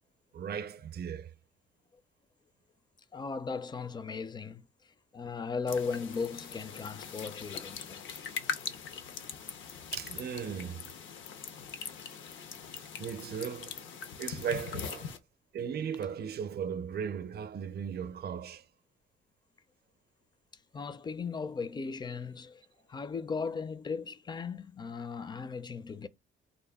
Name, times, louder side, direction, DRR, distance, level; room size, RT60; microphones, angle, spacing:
voice 1, 0.3-1.3 9.9-10.9 12.7-13.9 14.2-15.1 15.5-18.6, right 7 dB, 55° right, 0.6 m, -37 dB
voice 2, 3.1-8.1 16.2-16.3 20.7-22.6 22.9-26.1, left 5 dB, 20° left, 0.4 m, -37 dB
sound 1, 5.7-15.2, left 6 dB, 75° left, 0.7 m, -41 dB
3.9 x 2.2 x 3.5 m
cardioid pair, 90°, 20 cm